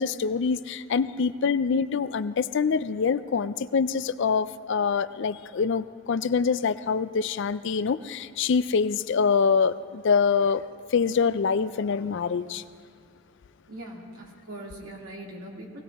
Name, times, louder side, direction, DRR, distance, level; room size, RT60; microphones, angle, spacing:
voice 1, 0.0-10.6 10.9-12.6, left 5 dB, 55° left, 15 dB, 0.4 m, -25 dB
voice 2, 13.7-15.8, right 1 dB, 80° right, -2 dB, 2.6 m, -41 dB
20.0 x 17.0 x 3.5 m, 2.4 s
head